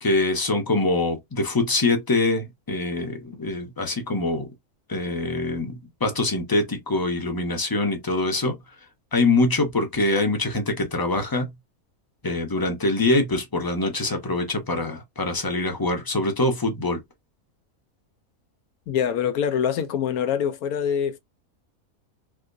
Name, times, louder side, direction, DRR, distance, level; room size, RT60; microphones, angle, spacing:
voice 1, 0.0-4.5 4.9-5.8 6.0-8.6 9.1-11.5 12.2-17.0, left 2 dB, 20° left, 0.6 m, -24 dB
voice 2, 18.9-21.2, left 8 dB, 90° left, 1.1 m, -24 dB
3.4 x 2.7 x 2.5 m
omnidirectional pair, 1.5 m